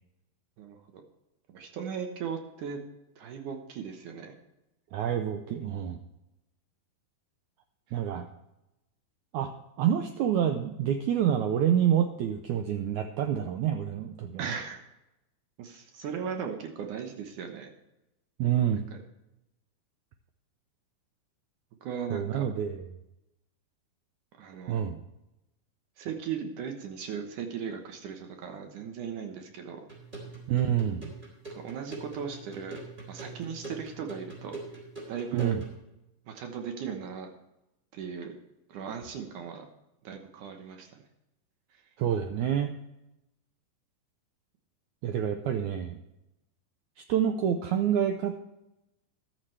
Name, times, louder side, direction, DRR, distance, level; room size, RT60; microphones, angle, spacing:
voice 1, 0.6-1.0 1.5-2.8 3.2-4.3 7.9-8.0 14.4-14.8 15.6-17.7 18.9-19.0 21.8-22.5 24.4-24.9 26.0-29.8 31.5-32.8 33.1-34.5 35.1-35.6 36.3-37.3 37.9-38.3 38.7-39.7 40.0-41.0 41.7-41.8, right 7 dB, 65° right, 4 dB, 2.3 m, -37 dB
voice 2, 4.9-6.0 7.9-8.3 9.3-9.5 9.8-14.5 18.4-18.9 22.1-22.8 24.7-25.0 30.5-31.1 35.3-35.6 42.0-42.7 45.0-46.0 47.1-48.3, right 9 dB, 85° right, 7 dB, 1.6 m, -27 dB
sound 1, 29.9-35.8, right 3 dB, 15° right, 3.7 m, -43 dB
14.0 x 11.5 x 3.2 m, 0.92 s
omnidirectional pair, 4.2 m